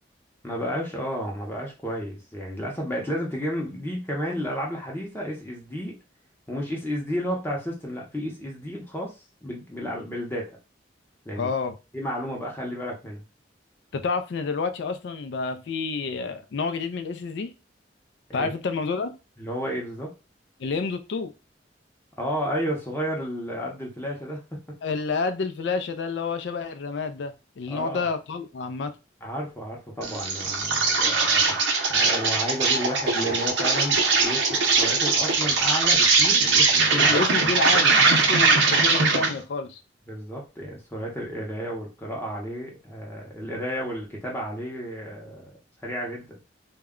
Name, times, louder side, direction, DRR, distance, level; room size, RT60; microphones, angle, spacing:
voice 1, 0.4-6.0 6.5-9.1 9.4-10.5 11.3-11.5 11.9-13.2 18.4-18.5 19.4-20.1 22.2-24.4 27.7-28.1 29.2-31.6 31.9-37.2 40.1-45.4 45.8-46.4, equal, 10° left, -2 dB, 0.7 m, -32 dB
voice 2, 11.4-11.8 13.9-17.5 18.3-19.2 20.6-21.3 24.8-28.9 37.0-39.8, left 4 dB, 65° left, 8 dB, 0.4 m, -29 dB
Insect, 30.0-39.4, right 4 dB, 70° right, 0.6 m, -21 dB
2.2 x 2.1 x 3.5 m, 0.28 s
head